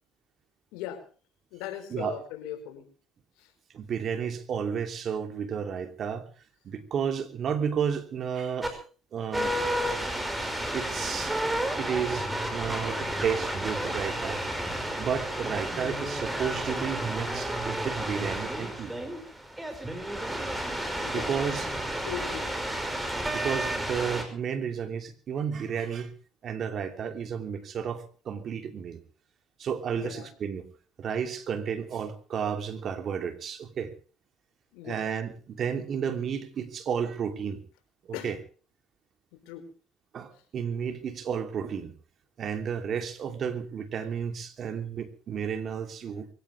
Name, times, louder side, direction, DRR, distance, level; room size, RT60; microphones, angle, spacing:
voice 1, 0.7-1.0 1.5-2.9 3.4-3.5 12.6-12.8 21.0-21.6 22.0-22.6 29.9-30.3 34.7-35.0 38.1-38.3 39.3-39.7, left 10 dB, 85° left, 6 dB, 4.7 m, -39 dB
voice 2, 3.7-6.3 6.6-8.8 9.1-9.5 10.7-11.4 11.8-14.5 15.0-18.9 21.1-21.7 23.1-26.1 26.4-29.0 29.6-30.7 31.0-33.9 34.8-37.6 38.0-38.4 40.1-41.9 42.4-46.3, right 7 dB, 50° right, 7 dB, 3.0 m, -32 dB
sound 1, 8.6-8.7 9.3-24.2, right 1 dB, 10° right, 5.3 m, -31 dB
23.0 x 17.0 x 3.4 m, 0.39 s
supercardioid pair, 85°, 0 cm